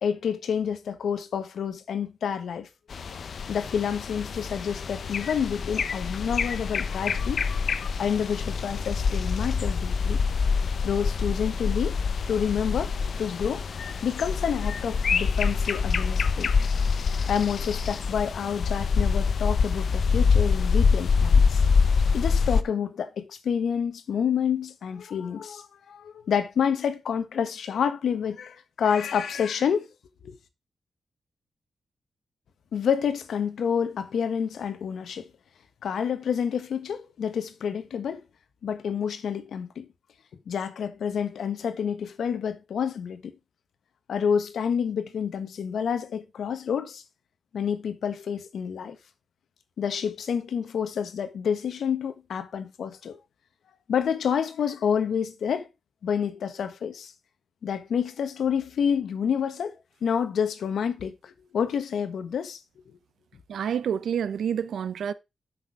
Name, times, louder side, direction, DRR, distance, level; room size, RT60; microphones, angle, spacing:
voice 1, 0.0-2.7 3.5-7.4 8.0-10.2 10.8-12.0 12.3-12.9 13.2-13.7 14.0-16.5 17.3-21.7 22.1-29.9 30.2-30.4 32.7-35.3 35.8-38.2 38.6-39.9 40.5-43.3 44.1-47.0 47.5-49.0 49.8-53.2 53.9-55.7 56.0-57.1 57.6-59.7 60.0-62.6, left 7 dB, 80° left, 1.3 m, -28 dB
sound 1, 2.9-22.6, left 5 dB, 55° left, 0.7 m, -25 dB
voice 2, 63.5-65.1, right 8 dB, 90° right, 0.7 m, -28 dB
8.3 x 6.2 x 4.7 m
wide cardioid pair, 170°, 0 cm